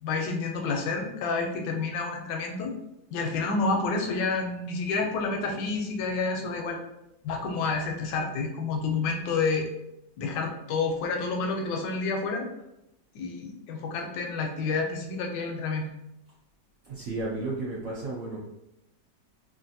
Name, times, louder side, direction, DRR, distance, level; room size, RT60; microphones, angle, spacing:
voice 1, 0.0-2.8 3.1-6.8 7.2-9.7 10.2-12.5 13.1-15.8, left 4 dB, 80° left, 3 dB, 1.2 m, -29 dB
voice 2, 16.8-18.4, right 2 dB, 70° right, -5 dB, 0.8 m, -33 dB
3.1 x 2.4 x 2.6 m, 0.86 s
omnidirectional pair, 1.9 m